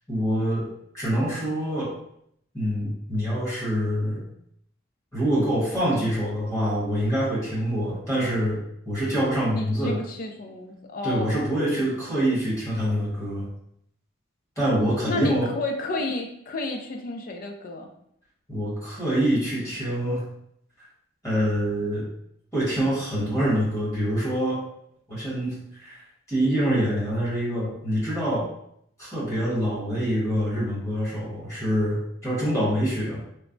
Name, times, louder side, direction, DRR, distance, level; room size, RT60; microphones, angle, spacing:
voice 1, 0.1-0.7 0.9-1.9 2.5-4.2 5.1-10.0 11.0-13.5 14.6-15.5 18.5-20.2 21.2-22.1 22.5-24.6 25.1-26.0 26.3-28.5 29.0-33.2, equal, 15° left, -8 dB, 1.2 m, -25 dB
voice 2, 9.5-11.6 14.7-17.9, left 2 dB, 45° left, 3 dB, 0.4 m, -31 dB
3.1 x 2.1 x 2.5 m, 0.72 s
head